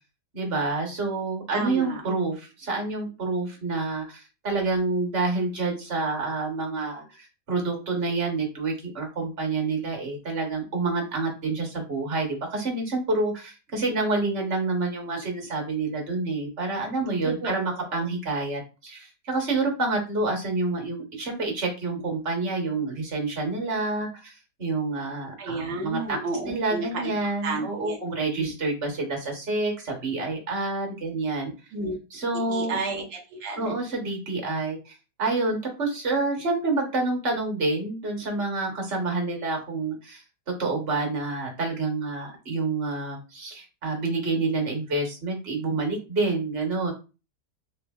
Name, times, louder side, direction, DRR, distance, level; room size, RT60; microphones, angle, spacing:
voice 1, 0.3-24.3 24.6-26.2 26.5-31.5 32.1-32.8 33.6-40.2 40.6-46.9, right 3 dB, 40° right, 1 dB, 1.0 m, -28 dB
voice 2, 1.5-2.0 17.4-17.7 25.4-27.1 27.4-28.0 28.4-28.5 31.7-31.9 32.5-33.7, right 3 dB, 85° right, 0 dB, 0.5 m, -31 dB
3.4 x 2.9 x 2.3 m, 0.32 s
omnidirectional pair, 2.0 m